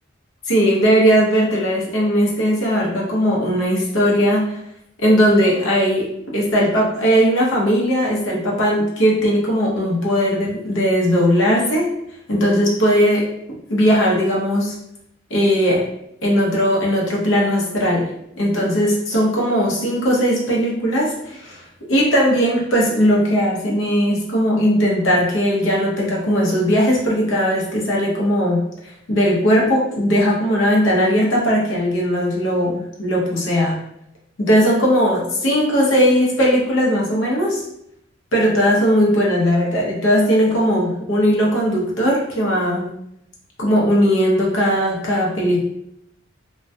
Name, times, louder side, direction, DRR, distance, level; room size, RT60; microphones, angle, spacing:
voice 1, 0.5-4.6 5.0-11.9 12.3-13.3 13.7-14.7 15.3-15.8 16.2-18.1 18.4-21.6 21.9-28.6 29.1-33.8 34.4-37.6 38.3-42.9 43.6-45.6, equal, 85° left, -3 dB, 0.7 m, -18 dB
2.2 x 2.1 x 2.6 m, 0.78 s
head